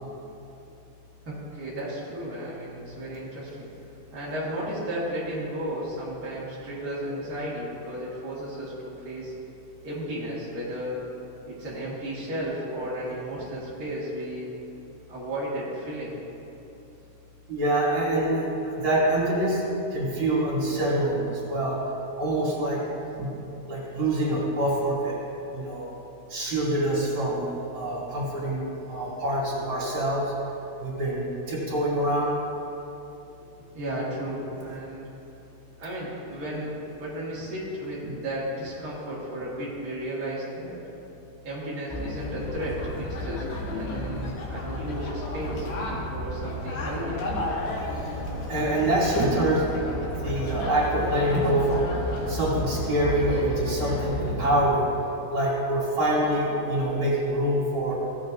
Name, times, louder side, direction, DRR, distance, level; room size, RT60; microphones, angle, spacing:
voice 1, 1.2-3.7 4.1-9.3 9.8-11.0 11.5-14.5 15.1-16.2 33.7-35.0 35.8-40.7 41.4-43.4 43.7-47.3, right 1 dB, 55° right, -8 dB, 1.0 m, -34 dB
voice 2, 17.5-19.6 19.9-21.8 22.2-22.8 23.2-23.4 23.7-25.2 25.5-25.9 26.3-30.3 30.8-32.3 48.0-49.7 50.2-51.9 52.3-54.9 55.3-58.0, right 1 dB, 35° right, -7 dB, 2.8 m, -25 dB
sound 1, 41.9-54.5, left 1 dB, 70° left, 3.1 m, -32 dB
16.0 x 8.5 x 2.6 m, 2.9 s
omnidirectional pair, 4.7 m